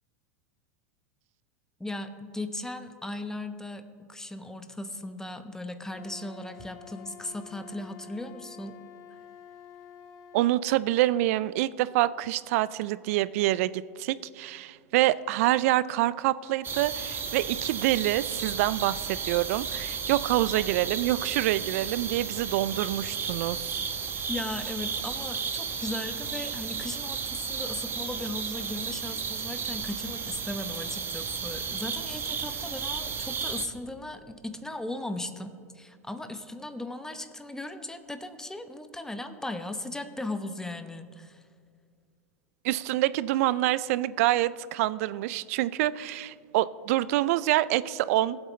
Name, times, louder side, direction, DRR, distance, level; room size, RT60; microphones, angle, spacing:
voice 1, 1.8-8.8 9.1-9.2 24.3-41.5, left 1 dB, 5° left, 9 dB, 0.9 m, -37 dB
Wind instrument woodwind instrument, 5.9-10.5, left 8 dB, 40° left, 0.8 m, -49 dB
voice 2, 10.3-23.8 42.6-48.4, right 15 dB, 65° right, 18 dB, 0.4 m, -26 dB
sound 1, 16.6-33.7, right 6 dB, 25° right, 1.0 m, -33 dB
19.0 x 8.0 x 3.2 m, 2.1 s
hypercardioid pair, 95°, 8 cm